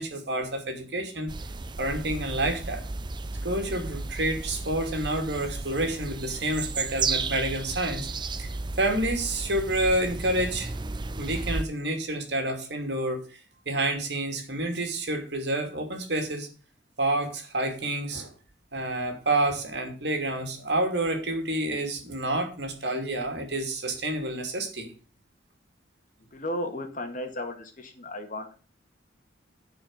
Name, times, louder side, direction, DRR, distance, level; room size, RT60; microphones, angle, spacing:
voice 1, 0.0-1.3 1.8-2.8 3.4-8.5 8.8-10.7 11.2-13.4 13.7-16.5 17.0-18.3 18.7-24.9, right 1 dB, 60° right, 4 dB, 2.7 m, -29 dB
sound 1, 1.3-11.6, right 3 dB, 25° right, 0.5 m, -34 dB
voice 2, 26.3-28.5, left 1 dB, 45° left, 6 dB, 1.8 m, -34 dB
10.0 x 4.9 x 7.9 m, 0.38 s
head